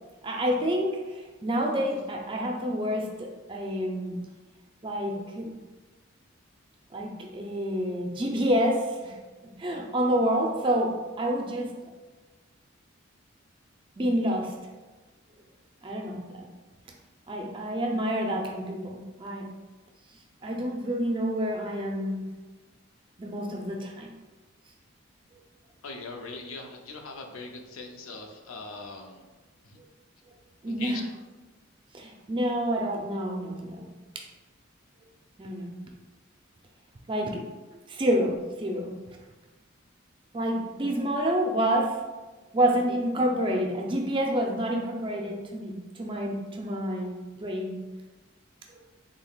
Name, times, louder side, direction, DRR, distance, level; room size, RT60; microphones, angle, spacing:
voice 1, 0.2-4.2 4.8-5.5 6.9-9.2 9.6-11.7 14.0-14.5 15.8-16.5 17.3-19.5 20.4-22.3 23.2-24.1 30.6-31.0 31.9-33.9 35.4-35.8 37.1-37.5 37.9-38.9 40.3-42.0 42.5-47.8, equal, 25° right, 1 dB, 0.4 m, -28 dB
voice 2, 25.8-29.2 29.6-29.8 30.6-31.0, left 3 dB, 85° left, 3 dB, 0.5 m, -40 dB
3.8 x 3.5 x 2.3 m, 1.2 s
head